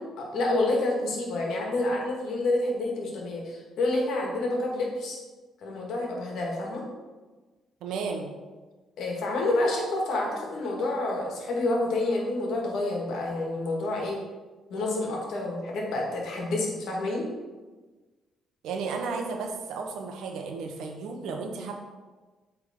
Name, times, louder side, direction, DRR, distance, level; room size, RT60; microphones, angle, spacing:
voice 1, 0.3-5.2 5.6-6.8 9.0-14.2 14.7-17.3, left 2 dB, 75° left, -1 dB, 1.6 m, -28 dB
voice 2, 7.8-8.3 18.6-21.7, right 4 dB, 85° right, 3 dB, 0.9 m, -33 dB
8.2 x 3.6 x 3.6 m, 1.3 s
cardioid pair, 90°, 0 cm